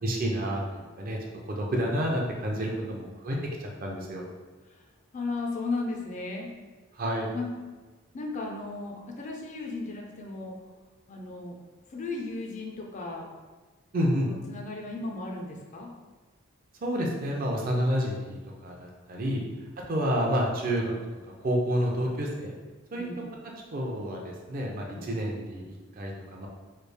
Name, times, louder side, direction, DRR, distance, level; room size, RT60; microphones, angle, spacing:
voice 1, 0.0-1.2 1.5-4.2 7.0-7.3 13.9-14.3 16.8-19.4 19.9-20.9 21.4-22.5 22.9-23.0 23.7-26.5, equal, 45° right, 0 dB, 0.5 m, -29 dB
voice 2, 5.1-6.5 7.3-7.5 8.1-10.5 11.1-11.6 11.9-13.3 14.2-15.9 22.9-23.2 24.9-25.1, left 3 dB, 35° left, 0 dB, 0.4 m, -35 dB
3.2 x 2.3 x 3.2 m, 1.3 s
head